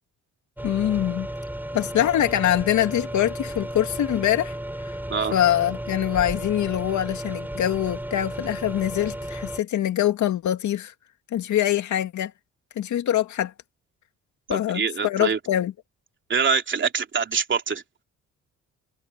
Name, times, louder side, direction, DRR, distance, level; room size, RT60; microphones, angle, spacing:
voice 1, 0.6-1.3 1.7-4.6 5.3-10.9 11.3-12.3 12.8-13.5 14.5-15.7, left 11 dB, 70° left, 2.2 m, -24 dB
sound 1, 0.6-9.6, right 1 dB, 5° right, 5.0 m, -34 dB
voice 2, 14.5-15.4 16.3-17.8, right 6 dB, 40° right, 3.4 m, -24 dB
cardioid pair, 90°, 30 cm